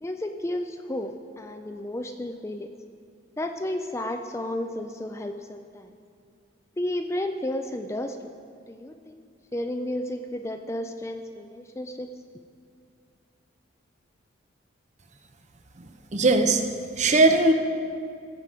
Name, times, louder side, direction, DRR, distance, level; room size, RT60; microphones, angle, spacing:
voice 1, 0.0-2.7 3.4-5.9 6.8-8.2 8.7-9.2 9.5-12.1, left 1 dB, 15° left, 6 dB, 0.3 m, -32 dB
voice 2, 16.1-16.6 17.0-17.5, right 2 dB, 35° right, 6 dB, 0.7 m, -19 dB
16.5 x 7.6 x 4.9 m, 2.3 s
head